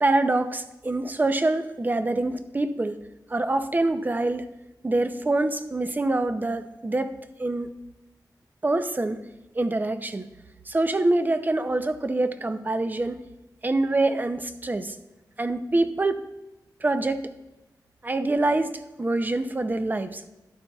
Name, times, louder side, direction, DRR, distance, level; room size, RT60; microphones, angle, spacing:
voice 1, 0.0-3.0 3.3-4.5 4.8-7.7 8.6-9.2 9.5-10.3 10.7-13.2 13.6-15.0 15.4-16.2 16.8-17.3 18.0-20.2, right 2 dB, 25° right, 10 dB, 0.6 m, -25 dB
11.5 x 11.5 x 2.3 m, 1.0 s
wide cardioid pair, 100°, 7 cm